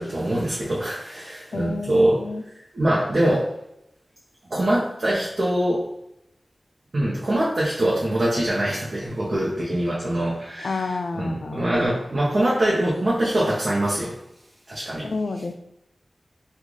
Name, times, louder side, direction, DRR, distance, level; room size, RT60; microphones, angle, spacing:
voice 1, 0.0-2.2 2.5-3.5 4.5-5.9 6.9-14.2 14.7-15.1, right 1 dB, 60° right, -6 dB, 0.8 m, -23 dB
voice 2, 1.5-2.4 10.6-11.7 15.0-15.5, left 3 dB, 85° left, 7 dB, 0.3 m, -29 dB
3.1 x 2.3 x 3.8 m, 0.79 s
wide cardioid pair, 60°, 0 cm